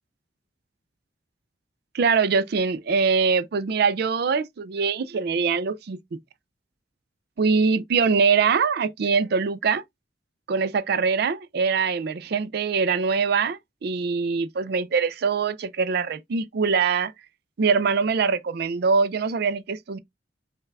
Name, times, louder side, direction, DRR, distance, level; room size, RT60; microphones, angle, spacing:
voice 1, 1.9-6.2 7.4-9.8 10.5-17.1 17.6-20.0, right 5 dB, 60° right, 0.4 m, -23 dB
5.6 x 2.3 x 3.3 m
head